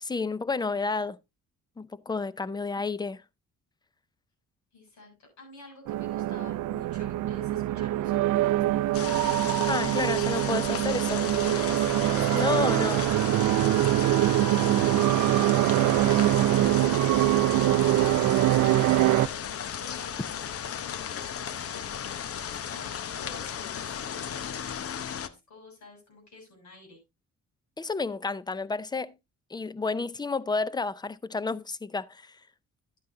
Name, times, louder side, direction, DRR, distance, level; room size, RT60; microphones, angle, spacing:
voice 1, 0.0-1.2 1.8-3.2 9.7-11.2 12.3-13.0 27.8-29.1 29.5-32.4, left 4 dB, 15° left, 0.5 m, -30 dB
voice 2, 4.7-9.0 10.2-10.8 11.1-12.5 14.2-19.2 19.7-27.0, left 2 dB, 65° left, 6.7 m, -49 dB
sound 1, 5.9-19.3, right 15 dB, 80° right, 0.5 m, -24 dB
sound 2, 8.9-25.3, left 8 dB, 50° left, 0.8 m, -35 dB
11.5 x 9.3 x 2.6 m
cardioid pair, 90°, 30 cm